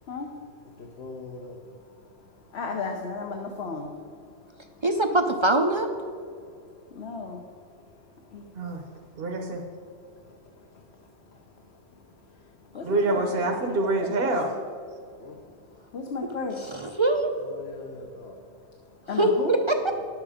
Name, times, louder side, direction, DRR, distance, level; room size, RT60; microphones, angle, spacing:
voice 1, 0.8-1.6 2.5-3.9 6.9-7.4 8.3-8.4 12.7-13.2 14.0-14.1 15.2-15.4 15.9-16.8 17.5-18.4 19.1-19.5, left 4 dB, 65° left, 1 dB, 1.1 m, -35 dB
voice 2, 4.8-5.9 16.6-17.3 19.1-19.9, right 2 dB, 35° right, 5 dB, 0.5 m, -23 dB
voice 3, 9.2-9.6 12.8-14.5, right 2 dB, 60° right, 2 dB, 1.1 m, -26 dB
10.5 x 7.8 x 5.0 m, 2.2 s
omnidirectional pair, 1.2 m